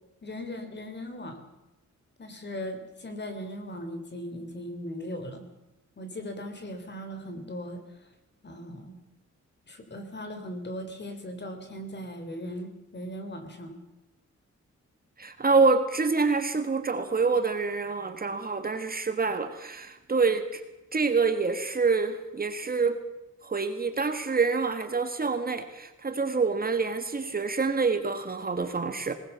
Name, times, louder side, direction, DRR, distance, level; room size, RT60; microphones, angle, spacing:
voice 1, 0.2-1.5 2.2-5.4 6.0-8.1 8.4-9.0 9.7-13.8, equal, 35° left, 7 dB, 3.1 m, -38 dB
voice 2, 15.2-20.6 20.9-23.0 23.4-29.1, right 4 dB, 30° right, 8 dB, 1.6 m, -26 dB
20.0 x 19.5 x 6.9 m, 1.0 s
wide cardioid pair, 145°, 29 cm